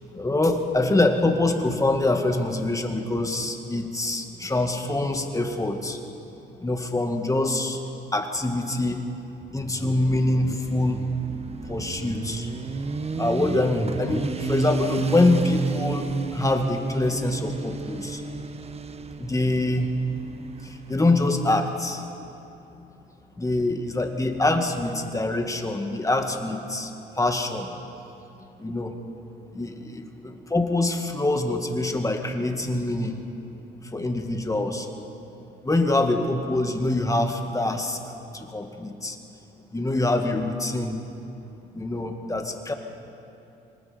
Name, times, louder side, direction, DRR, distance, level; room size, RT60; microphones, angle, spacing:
voice 1, 0.1-6.0 6.6-7.8 8.1-9.0 9.5-11.1 11.7-12.5 13.2-16.1 16.3-18.2 19.2-19.9 20.9-22.0 23.4-26.9 27.2-27.7 28.6-28.9 29.5-29.9 30.5-33.2 33.9-34.9 35.6-38.0 38.3-39.2 39.7-41.0 41.7-42.7, left 2 dB, 15° left, 4 dB, 2.0 m, -24 dB
Motorcycle, 9.4-21.1, right 4 dB, 30° right, 1.0 m, -32 dB
26.0 x 19.0 x 5.2 m, 2.9 s
cardioid pair, 90°, 20 cm